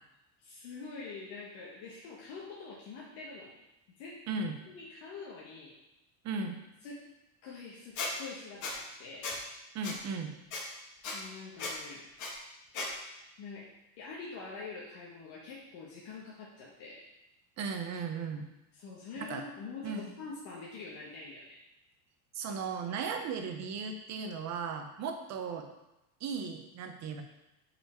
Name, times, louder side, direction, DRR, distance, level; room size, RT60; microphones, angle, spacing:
voice 1, 0.4-3.6 4.0-4.3 4.7-5.7 6.8-7.1 7.4-9.3 11.1-12.1 13.4-13.7 14.0-17.0 18.7-21.6, left 4 dB, 60° left, -4 dB, 1.4 m, -45 dB
voice 2, 4.3-4.6 6.2-6.6 9.7-10.4 17.6-18.5 19.2-19.4 19.8-20.1 22.3-25.7 26.2-27.2, right 5 dB, 40° right, 5 dB, 0.8 m, -36 dB
Squeak, 8.0-8.1 8.6-8.7 9.2-9.4 9.8-9.9 10.5-10.6 11.0-11.2 11.6-11.7 12.2-12.3 12.7-12.9, left 3 dB, 40° left, 1.4 m, -35 dB
5.5 x 4.3 x 4.5 m, 0.94 s
cardioid pair, 145°, 43 cm